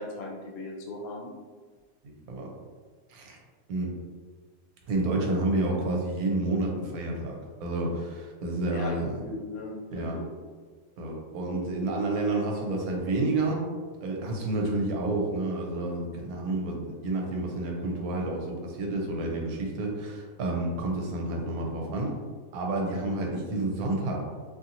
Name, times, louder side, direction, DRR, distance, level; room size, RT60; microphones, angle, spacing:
voice 1, 0.0-1.3 8.7-10.3, left 2 dB, 75° left, -1 dB, 1.0 m, -38 dB
voice 2, 2.0-2.5 3.1-3.4 3.7-3.9 4.9-9.2 9.9-10.2 11.0-13.7 14.0-22.1 22.5-24.2, right 2 dB, 85° right, 0 dB, 1.1 m, -29 dB
2.7 x 2.7 x 2.5 m, 1.5 s
omnidirectional pair, 1.5 m